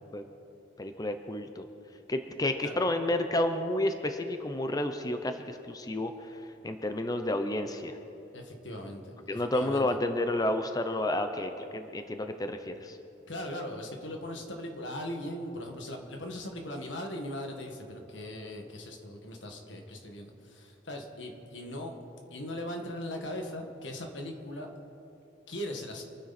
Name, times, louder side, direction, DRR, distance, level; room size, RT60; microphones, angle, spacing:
voice 1, 0.8-1.6 2.1-6.1 6.6-8.0 9.3-13.0, left 1 dB, 20° left, 7 dB, 0.7 m, -30 dB
voice 2, 8.3-9.9 13.3-22.0 22.3-24.7 25.5-26.0, left 1 dB, 85° left, 3 dB, 1.9 m, -39 dB
26.0 x 10.0 x 4.3 m, 3.0 s
head